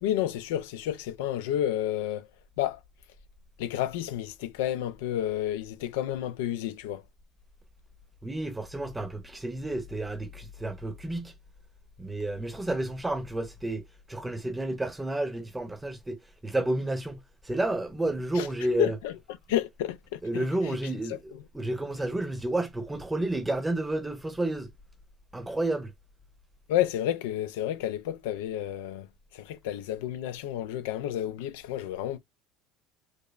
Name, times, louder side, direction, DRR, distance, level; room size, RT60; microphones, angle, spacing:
voice 1, 0.0-2.3 2.6-2.8 3.6-7.0 18.4-18.5 18.8-19.1 19.5-20.8 21.1-21.4 26.7-29.1 29.3-32.2, left 12 dB, 85° left, 0.4 m, -30 dB
voice 2, 8.2-11.3 12.0-13.8 14.1-17.2 17.4-18.9 20.2-24.7 25.3-25.9, right 2 dB, 10° right, 0.8 m, -31 dB
5.0 x 2.0 x 2.4 m
supercardioid pair, 95°, 0 cm